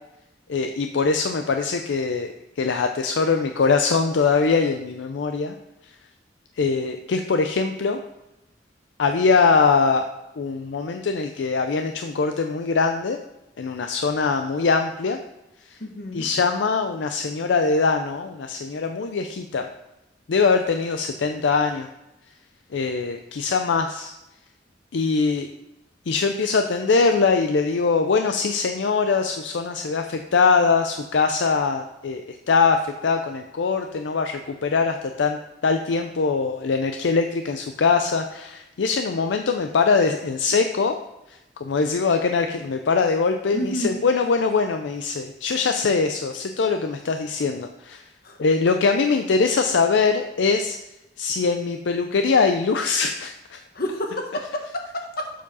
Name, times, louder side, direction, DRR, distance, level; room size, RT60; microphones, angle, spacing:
voice 1, 0.5-2.3 2.6-5.5 6.6-8.0 9.0-10.1 10.4-13.2 13.6-15.2 16.1-19.7 20.3-21.9 22.7-24.1 24.9-25.5 26.1-35.4 35.6-41.0 41.6-48.0 48.4-50.8 51.2-53.6, left 4 dB, 75° left, 6 dB, 0.5 m, -22 dB
voice 2, 15.8-16.3 43.5-44.0 48.2-48.4 53.7-55.3, left 1 dB, 55° left, 3 dB, 1.3 m, -29 dB
7.3 x 4.7 x 5.4 m, 0.93 s
head